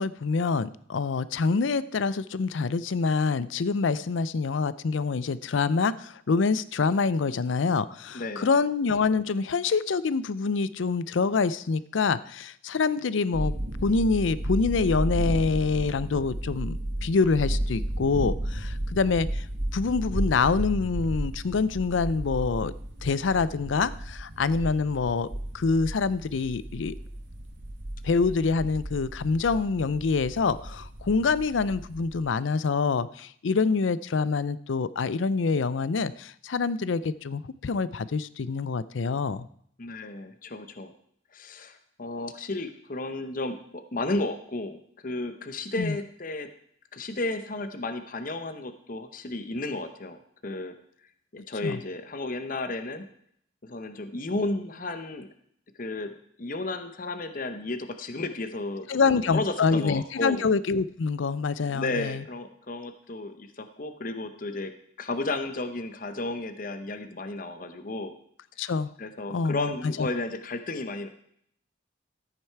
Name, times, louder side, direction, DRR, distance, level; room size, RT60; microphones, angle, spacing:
voice 1, 0.0-13.5 13.8-19.4 19.7-22.7 23.0-25.3 25.5-26.9 28.0-39.5 45.8-46.0 51.6-51.8 58.9-62.2 68.6-68.9 69.3-69.7 70.0-70.1, left 4 dB, 80° left, 17 dB, 0.5 m, -26 dB
voice 2, 8.1-8.5 39.8-40.9 41.3-44.8 45.0-46.5 46.9-50.7 51.3-53.1 53.6-55.3 55.8-56.1 56.4-60.5 61.7-64.7 65.0-68.1 69.0-71.1, left 2 dB, 45° left, 8 dB, 0.8 m, -33 dB
sound 1, 13.3-32.2, right 1 dB, 70° right, 1.9 m, -33 dB
13.5 x 8.9 x 4.6 m, 0.67 s
head